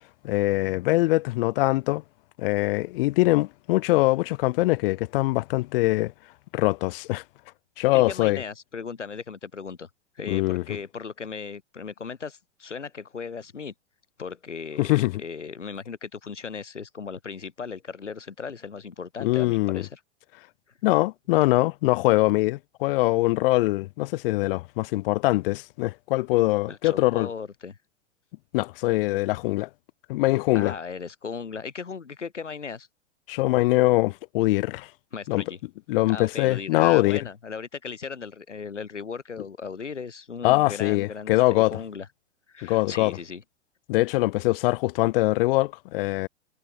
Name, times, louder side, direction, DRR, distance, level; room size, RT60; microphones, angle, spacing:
voice 1, 0.2-2.0 2.4-6.1 6.5-7.2 7.8-8.4 10.3-10.6 14.8-15.2 19.2-19.8 20.8-27.3 28.5-29.7 30.1-30.7 33.3-34.9 35.3-35.4 35.9-37.2 40.4-41.8 42.6-43.2 43.9-46.3, left 19 dB, 50° left, 2.5 m, -23 dB
voice 2, 7.9-9.9 10.2-13.7 14.2-20.0 26.7-27.8 30.5-32.9 35.1-35.6 36.1-42.1 42.5-43.4, left 5 dB, 85° left, 5.7 m, -37 dB
hypercardioid pair, 110°, 35 cm